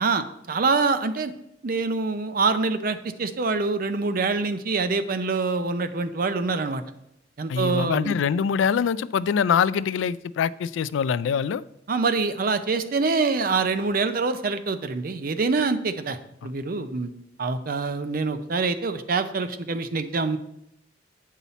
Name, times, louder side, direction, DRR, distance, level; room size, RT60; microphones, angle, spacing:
voice 1, 0.0-1.3 1.6-6.8 7.4-8.1 11.9-20.4, right 4 dB, 50° right, 10 dB, 0.5 m, -25 dB
voice 2, 7.5-11.6, left 7 dB, 85° left, 18 dB, 0.3 m, -24 dB
8.2 x 5.6 x 4.1 m, 0.79 s
head